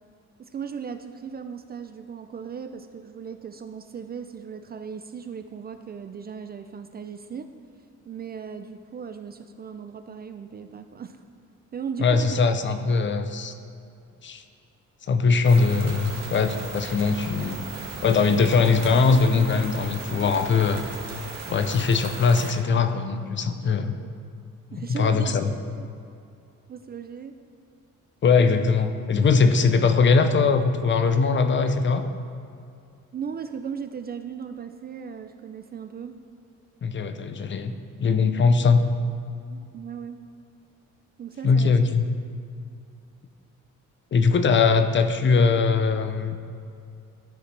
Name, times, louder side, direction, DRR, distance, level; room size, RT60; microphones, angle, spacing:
voice 1, 0.4-7.5 8.1-11.2 11.7-12.5 24.0-24.1 24.7-25.9 26.7-27.3 33.1-36.2 39.5-40.2 41.2-41.9, right 6 dB, 35° right, 8 dB, 0.4 m, -37 dB
voice 2, 12.0-13.5 14.2-14.4 15.1-17.7 18.0-20.8 21.5-23.9 24.8-25.5 28.2-32.1 36.8-37.7 38.0-38.8 41.4-42.0 44.1-46.4, left 4 dB, 40° left, 8 dB, 0.6 m, -21 dB
sound 1, 15.4-22.5, right 3 dB, 60° right, 1.4 m, -37 dB
12.0 x 4.8 x 3.3 m, 2.5 s
cardioid pair, 90°, 30 cm